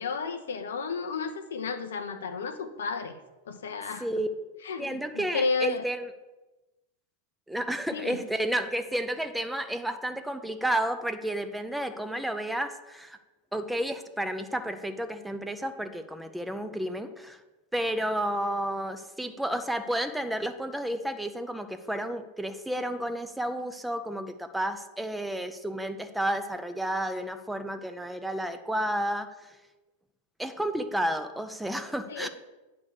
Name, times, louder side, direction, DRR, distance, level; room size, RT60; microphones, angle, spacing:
voice 1, 0.0-3.2 3.5-4.1 4.6-5.8 7.9-8.2 32.1-32.3, left 4 dB, 70° left, 9 dB, 0.7 m, -32 dB
voice 2, 4.8-6.1 7.5-13.2 13.5-17.4 17.7-29.5 30.4-32.3, right 1 dB, 5° right, 9 dB, 0.6 m, -31 dB
9.4 x 3.4 x 6.5 m, 1.1 s
figure-of-eight pair, 90°, 0 cm